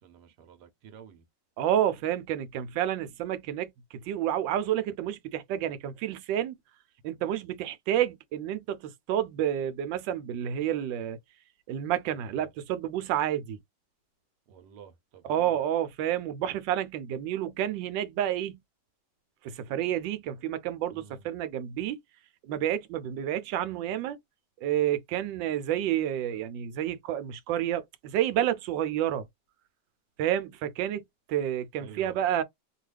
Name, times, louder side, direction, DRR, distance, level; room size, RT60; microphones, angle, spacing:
voice 1, 0.0-1.2 12.2-12.5 14.5-15.5 20.9-21.3 31.8-32.2, right 7 dB, 70° right, 1.3 m, -50 dB
voice 2, 1.6-6.5 7.0-11.2 11.7-13.6 15.2-18.6 19.4-22.0 22.4-24.2 24.6-29.3 30.2-32.4, right 11 dB, 90° right, 1.3 m, -29 dB
3.0 x 2.3 x 3.2 m
omnidirectional pair, 1.9 m